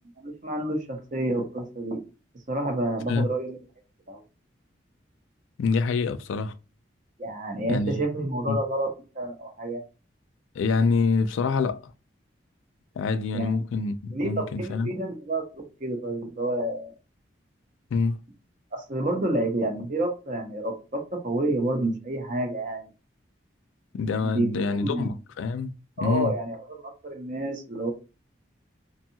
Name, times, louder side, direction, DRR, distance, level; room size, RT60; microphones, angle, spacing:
voice 1, 0.2-2.0 2.5-3.6 4.1-4.2 7.2-8.9 9.1-9.8 13.3-13.6 14.1-16.9 18.7-22.9 24.2-25.1 26.0-27.9, right 1 dB, 40° right, 0.7 m, -29 dB
voice 2, 5.6-6.5 7.7-8.0 8.5-8.6 10.6-11.9 13.0-14.9 17.9-18.2 23.9-25.7 26.0-26.3, left 4 dB, 85° left, 0.3 m, -26 dB
2.7 x 2.3 x 2.7 m
head